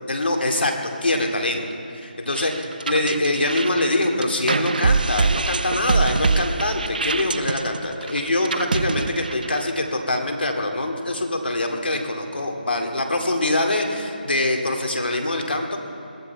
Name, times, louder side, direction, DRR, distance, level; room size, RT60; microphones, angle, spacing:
voice 1, 0.1-0.7 1.0-1.6 2.0-15.8, left 2 dB, 85° left, 2 dB, 2.3 m, -24 dB
sound 1, 2.3-9.8, right 4 dB, 60° right, 0.6 m, -24 dB
22.0 x 14.0 x 4.6 m, 2.6 s
figure-of-eight pair, 165°, 5 cm